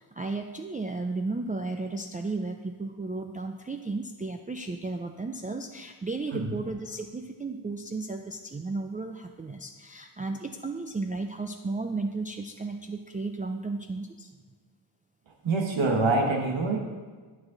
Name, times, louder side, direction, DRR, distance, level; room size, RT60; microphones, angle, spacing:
voice 1, 0.0-14.3, right 3 dB, 20° right, 3 dB, 0.3 m, -34 dB
voice 2, 15.4-16.8, right 3 dB, 70° right, 1 dB, 1.3 m, -25 dB
12.0 x 6.1 x 3.8 m, 1.4 s
wide cardioid pair, 145°, 47 cm